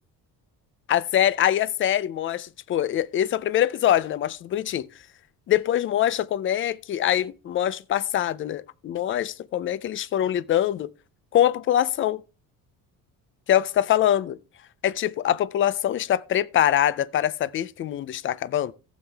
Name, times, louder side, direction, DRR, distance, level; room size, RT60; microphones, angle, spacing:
voice 1, 0.9-4.9 5.5-10.9 11.3-12.2 13.5-14.4 14.8-18.7, left 11 dB, 35° left, 0.4 m, -24 dB
14.5 x 7.4 x 3.4 m
cardioid pair, 170°, 35 cm